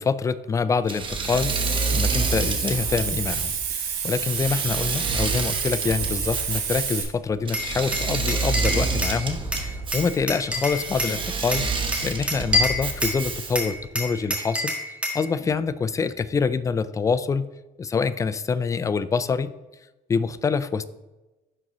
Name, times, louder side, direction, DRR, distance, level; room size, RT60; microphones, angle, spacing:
voice 1, 0.0-17.5 17.8-19.5 20.1-20.8, left 5 dB, 20° left, 14 dB, 0.3 m, -26 dB
Engine / Mechanisms, 0.9-13.8, right 4 dB, 30° right, 0.9 m, -28 dB
Hiss, 1.3-7.0, right 7 dB, 85° right, 1.3 m, -29 dB
Glass, 7.5-9.2 9.5-11.2 11.5-13.2 13.6-15.2, left 1 dB, 5° right, 1.5 m, -27 dB
10.5 x 3.8 x 3.0 m, 1.1 s
cardioid pair, 115°, 16 cm